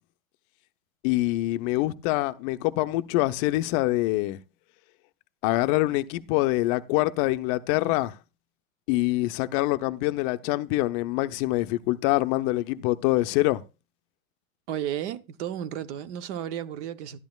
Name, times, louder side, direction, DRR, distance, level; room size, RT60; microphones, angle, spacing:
voice 1, 1.0-4.4 5.4-8.2 8.9-13.6, left 18 dB, 40° left, 0.6 m, -25 dB
voice 2, 14.7-17.2, right 10 dB, 55° right, 0.8 m, -33 dB
12.5 x 10.5 x 2.3 m
hypercardioid pair, 120°, 42 cm